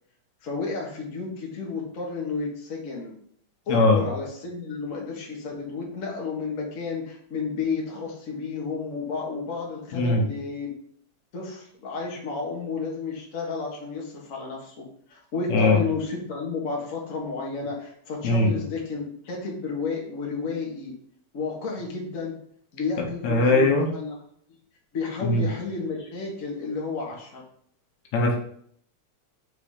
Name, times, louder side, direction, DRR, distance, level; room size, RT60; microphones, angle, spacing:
voice 1, 0.4-3.1 3.7-10.7 11.3-20.9 21.3-22.3 22.7-24.1 24.9-27.4, left 4 dB, 35° left, -2 dB, 1.4 m, -32 dB
voice 2, 3.7-4.0 9.9-10.2 15.5-15.8 18.2-18.5 23.0-23.9 25.2-25.5 28.1-28.4, left 2 dB, 70° left, 1 dB, 2.2 m, -20 dB
5.6 x 3.9 x 4.9 m, 0.64 s
omnidirectional pair, 3.4 m